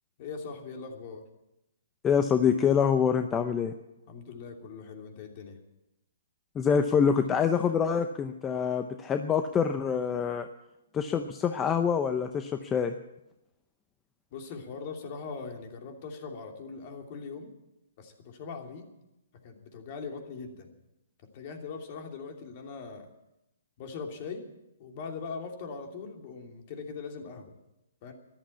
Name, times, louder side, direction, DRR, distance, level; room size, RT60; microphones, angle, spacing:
voice 1, 0.2-1.2 4.1-5.6 14.3-17.5 18.0-18.8 19.4-20.7 21.3-23.1 23.8-24.5 24.8-27.6 28.0-28.1, left 5 dB, 40° left, 3 dB, 2.8 m, -41 dB
voice 2, 2.0-3.7 6.5-10.5 10.9-12.9, left 7 dB, 15° left, 7 dB, 0.7 m, -26 dB
14.0 x 12.0 x 8.4 m, 0.91 s
hypercardioid pair, 155°, 0 cm